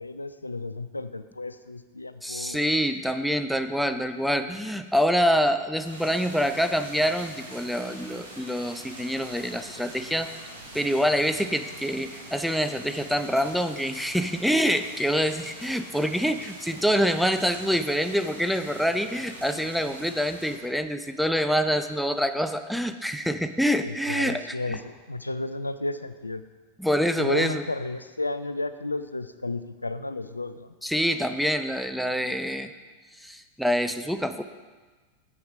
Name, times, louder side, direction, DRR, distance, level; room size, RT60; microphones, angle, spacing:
voice 1, 0.0-2.6 23.8-26.4 27.2-30.7, left 2 dB, 80° left, 12 dB, 0.4 m, -33 dB
voice 2, 2.2-10.3 10.7-24.4 24.7-24.8 26.8-27.6 30.8-32.7 33.2-34.4, equal, ahead, 9 dB, 0.5 m, -26 dB
sound 1, 5.8-20.6, right 1 dB, 75° right, 2.2 m, -44 dB
7.9 x 6.9 x 5.1 m, 1.4 s
figure-of-eight pair, 90°, 0 cm